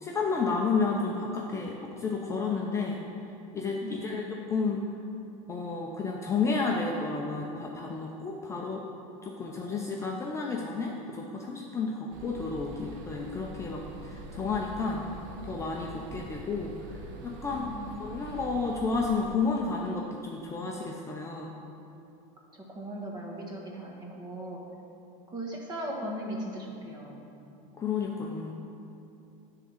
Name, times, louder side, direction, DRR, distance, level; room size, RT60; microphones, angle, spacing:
voice 1, 0.0-3.0 3.5-4.8 5.5-8.8 9.2-15.1 15.4-16.7 17.2-17.7 18.0-21.5 27.8-28.5, left 4 dB, 15° left, -1 dB, 0.5 m, -31 dB
voice 2, 3.8-4.2 17.5-18.2 22.5-24.6 25.3-27.2, right 1 dB, 25° right, -1 dB, 1.4 m, -38 dB
sound 1, 12.1-19.4, right 2 dB, 55° right, 1.0 m, -44 dB
10.5 x 3.7 x 7.1 m, 2.7 s
supercardioid pair, 150°, 18 cm